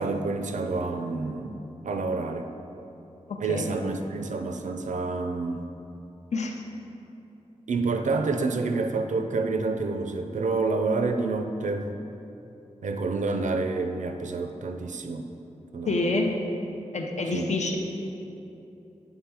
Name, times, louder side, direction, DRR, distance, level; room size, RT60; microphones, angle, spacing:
voice 1, 0.0-1.6 1.8-2.5 3.4-5.6 7.7-11.9 12.8-15.3 15.7-16.1 17.3-17.5, right 3 dB, 85° right, 6 dB, 0.4 m, -28 dB
voice 2, 3.3-3.7 6.3-6.6 15.9-16.4 16.9-17.8, left 2 dB, 70° left, 2 dB, 0.7 m, -27 dB
8.9 x 3.5 x 4.7 m, 2.9 s
wide cardioid pair, 105°, 12 cm